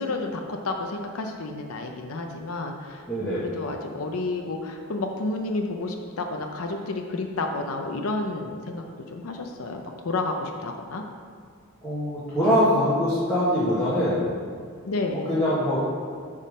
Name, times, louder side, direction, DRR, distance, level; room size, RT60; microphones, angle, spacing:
voice 1, 0.0-11.0 14.8-15.2, left 2 dB, 85° left, 3 dB, 0.6 m, -31 dB
voice 2, 3.1-3.4 11.8-14.3 15.3-15.8, equal, 5° left, -11 dB, 1.3 m, -23 dB
8.3 x 3.8 x 5.0 m, 2.2 s
head